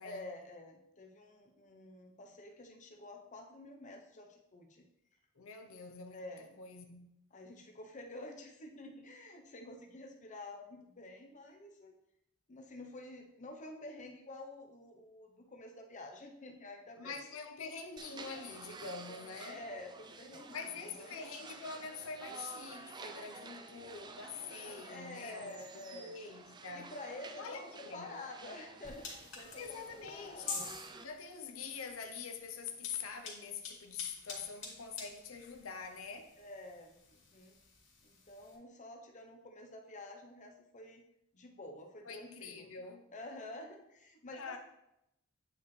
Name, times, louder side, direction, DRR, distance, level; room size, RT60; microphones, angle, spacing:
voice 1, 0.0-4.9 6.1-6.6 7.3-11.9 12.5-17.2 19.5-20.6 20.8-21.2 24.8-26.2 26.7-30.7 36.4-37.5 38.0-41.0 41.3-42.7 43.1-44.6, left 2 dB, 35° left, 0.8 m, -49 dB
voice 2, 5.4-6.2 6.6-7.1 17.0-19.6 20.5-25.6 25.9-26.9 27.4-28.2 29.5-30.7 31.0-36.3 42.0-43.1 44.3-44.6, left 5 dB, 90° left, 0.7 m, -45 dB
sound 1, 18.0-31.0, right 3 dB, 20° right, 0.4 m, -51 dB
sound 2, 28.8-38.6, left 4 dB, 70° left, 2.2 m, -49 dB
8.9 x 4.8 x 3.2 m
head